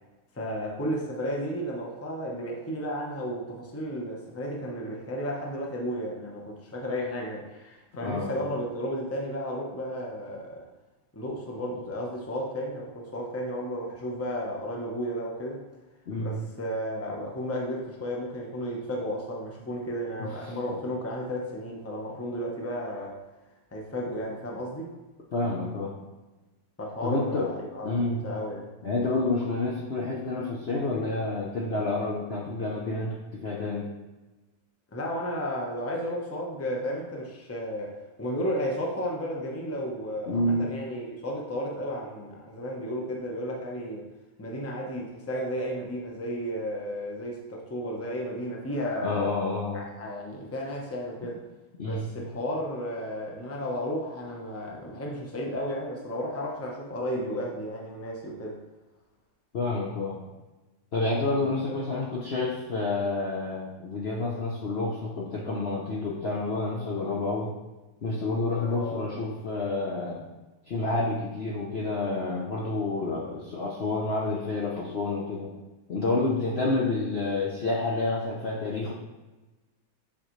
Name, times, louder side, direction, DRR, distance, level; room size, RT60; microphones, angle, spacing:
voice 1, 0.3-10.7 11.1-15.6 16.2-23.2 23.7-24.9 26.8-28.7 34.9-44.1 44.4-49.3 49.7-51.4 51.8-58.6 61.2-61.8 68.6-69.1, equal, 20° left, -2 dB, 0.3 m, -33 dB
voice 2, 8.0-8.4 16.1-16.4 20.2-20.3 20.7-20.8 25.3-25.9 27.0-27.5 27.8-28.2 28.8-33.9 40.3-40.7 49.0-49.8 51.8-52.1 59.5-60.2 60.9-67.5 68.0-70.2 70.7-75.5 75.9-78.9, left 2 dB, 85° left, -4 dB, 0.5 m, -29 dB
6.4 x 5.7 x 3.2 m, 1.1 s
omnidirectional pair, 2.2 m